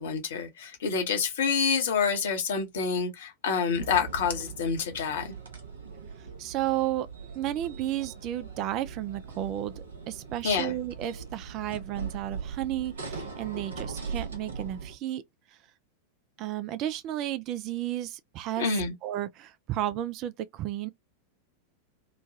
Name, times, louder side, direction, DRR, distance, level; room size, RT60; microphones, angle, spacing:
voice 1, 0.0-5.3 10.4-10.7 18.6-18.9, left 6 dB, 60° left, 0.9 m, -27 dB
sound 1, 3.7-14.9, right 5 dB, 70° right, 0.8 m, -40 dB
voice 2, 6.4-7.1 7.4-9.7 10.1-15.2 16.4-18.7 19.0-20.9, right 13 dB, 40° right, 0.3 m, -32 dB
3.0 x 2.2 x 2.6 m
figure-of-eight pair, 90°, 0 cm